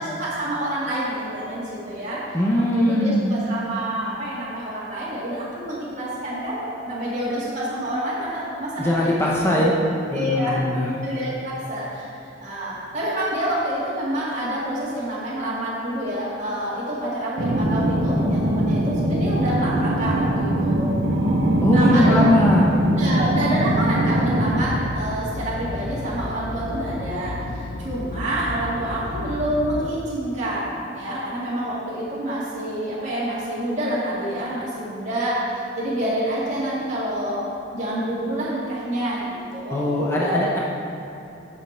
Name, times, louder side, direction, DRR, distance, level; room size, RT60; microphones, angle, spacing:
voice 1, 0.0-2.2 2.7-9.7 10.1-10.6 11.0-20.9 21.7-22.2 23.0-40.3, right 1 dB, 35° right, -9 dB, 2.1 m, -27 dB
voice 2, 2.3-3.3 8.8-9.8 10.1-10.9 21.6-22.7 39.7-40.6, left 1 dB, 15° left, -4 dB, 0.7 m, -20 dB
sound 1, 17.4-24.6, right 1 dB, 65° right, 1.0 m, -21 dB
sound 2, 24.5-29.9, left 2 dB, 40° left, 0.4 m, -32 dB
8.8 x 6.7 x 4.3 m, 2.9 s
head